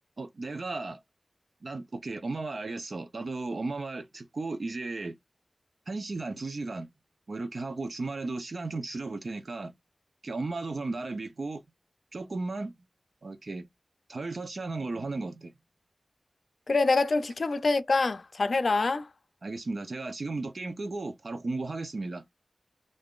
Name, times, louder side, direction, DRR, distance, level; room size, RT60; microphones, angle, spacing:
voice 1, 0.2-1.0 1.6-5.2 5.9-6.9 7.3-9.8 10.2-11.6 12.1-12.8 13.2-13.7 14.1-15.5 19.4-22.3, right 3 dB, 75° right, 0.6 m, -35 dB
voice 2, 16.7-19.1, left 3 dB, 85° left, 0.4 m, -25 dB
2.5 x 2.4 x 3.6 m
wide cardioid pair, 65°, 0 cm